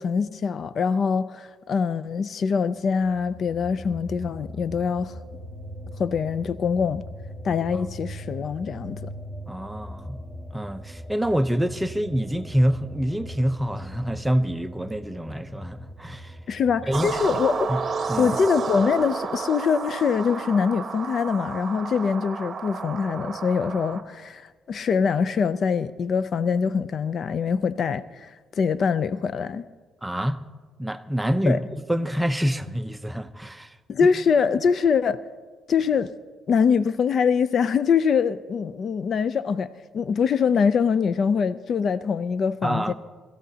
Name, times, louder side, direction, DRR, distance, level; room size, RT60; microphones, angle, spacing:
voice 1, 0.0-5.1 6.0-7.0 7.4-9.1 16.5-17.7 18.2-24.4 24.7-28.3 28.6-29.6 31.5-31.6 33.9-35.2 35.7-36.1 36.5-39.7 39.9-42.9, left 6 dB, 55° left, 0.4 m, -23 dB
sound 1, 3.0-19.1, equal, 15° left, 2.0 m, -41 dB
voice 2, 9.5-10.2 10.5-16.4 16.9-17.4 17.7-17.8 18.1-18.3 30.0-30.4 30.8-31.6 31.9-33.8 42.6-42.9, equal, 5° right, 0.6 m, -26 dB
sound 2, 16.9-24.0, right 5 dB, 45° right, 0.9 m, -31 dB
21.5 x 13.5 x 2.8 m
cardioid pair, 90°, 0 cm